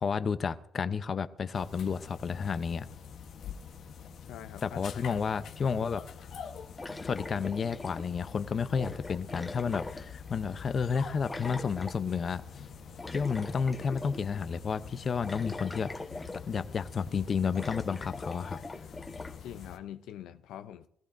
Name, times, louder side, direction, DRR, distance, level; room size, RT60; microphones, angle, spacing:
voice 1, 0.0-2.9 4.6-6.0 7.0-12.4 13.1-15.9 16.5-18.6, left 6 dB, 45° left, 0.6 m, -31 dB
sound 1, 1.5-19.8, left 6 dB, 65° left, 1.1 m, -46 dB
voice 2, 4.3-5.2 19.4-20.9, left 11 dB, 90° left, 0.5 m, -45 dB
sound 2, 6.8-8.3 8.8-10.5 11.2-12.0 13.0-14.3 14.6-14.7 15.2-16.7 17.1-17.2 17.6-19.4, left 2 dB, 20° left, 1.2 m, -42 dB
21.5 x 14.5 x 2.6 m
cardioid pair, 90°, 0 cm